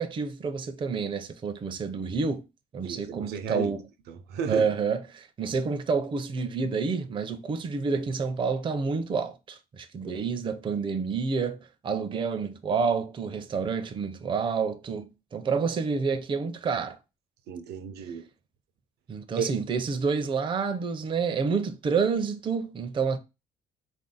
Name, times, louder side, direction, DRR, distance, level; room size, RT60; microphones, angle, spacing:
voice 1, 0.0-2.4 2.7-3.8 4.5-17.0 19.1-23.2, right 5 dB, 30° right, 0.5 m, -29 dB
voice 2, 2.8-3.7 4.1-4.7 17.5-18.3 19.4-19.5, right 6 dB, 75° right, 0.6 m, -33 dB
3.6 x 2.6 x 3.7 m
cardioid pair, 110°, 17 cm